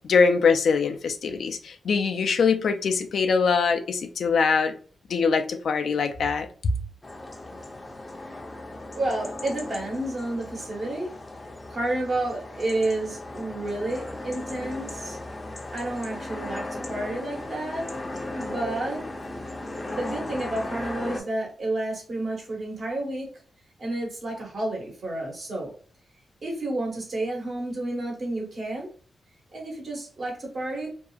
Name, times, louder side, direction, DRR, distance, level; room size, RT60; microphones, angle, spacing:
voice 1, 0.1-4.7 5.1-6.7, left 5 dB, 75° left, 0.4 m, -23 dB
sound 1, 7.0-21.2, left 2 dB, 25° left, 0.5 m, -37 dB
voice 2, 8.9-11.1 11.7-15.2 15.7-17.9 18.3-19.0 19.9-23.3 23.8-25.7 26.4-28.9 29.5-30.9, right 2 dB, 60° right, 1.3 m, -30 dB
2.7 x 2.3 x 2.3 m
cardioid pair, 70°, 0 cm